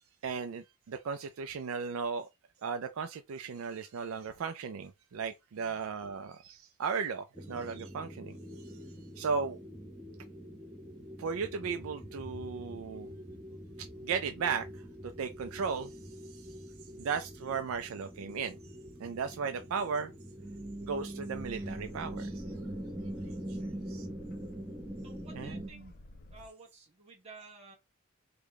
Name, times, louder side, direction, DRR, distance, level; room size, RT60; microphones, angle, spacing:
voice 1, 0.2-2.3 2.6-8.4 8.6-8.8 9.2-9.6 11.2-13.1 13.8-16.5 17.0-18.6 19.0-20.1 20.8-22.4 23.5-23.6 23.9-24.1 25.4-25.6, right 5 dB, 70° right, 0.4 m, -36 dB
sound 1, 7.3-25.7, right 1 dB, 5° right, 0.6 m, -43 dB
Boat Water vehicle, 21.3-26.5, left 1 dB, 45° left, 0.4 m, -52 dB
voice 2, 25.0-25.9 26.3-27.8, right 3 dB, 30° right, 1.2 m, -53 dB
3.4 x 2.2 x 3.5 m
head